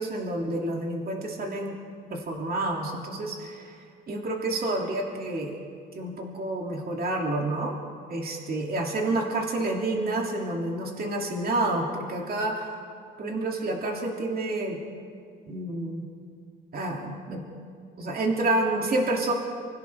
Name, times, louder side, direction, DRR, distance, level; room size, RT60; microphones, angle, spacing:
voice 1, 0.0-1.8 2.1-3.8 4.1-5.6 5.9-7.8 8.1-12.7 13.2-14.8 15.5-16.0 16.7-17.4 18.0-19.3, right 2 dB, 50° right, 0 dB, 2.8 m, -29 dB
25.0 x 16.5 x 3.6 m, 2.2 s
cardioid pair, 90°, 20 cm